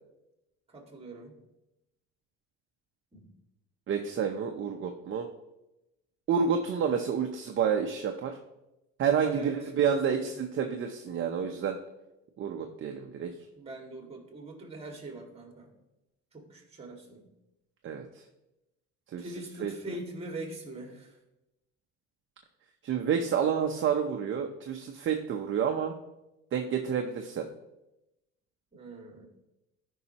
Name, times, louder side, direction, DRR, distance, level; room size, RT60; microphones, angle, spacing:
voice 1, 0.7-1.3 3.1-3.3 9.3-9.5 9.9-10.3 13.6-15.7 16.3-17.3 19.2-21.1 28.7-29.3, right 1 dB, 20° right, 2 dB, 2.1 m, -43 dB
voice 2, 3.9-5.3 6.3-8.4 9.0-11.8 12.4-13.3 17.8-18.0 19.1-19.2 19.6-19.7 22.8-25.9 26.5-27.5, right 7 dB, 40° right, 4 dB, 0.7 m, -29 dB
13.5 x 5.6 x 2.9 m, 0.93 s
cardioid pair, 125°, 31 cm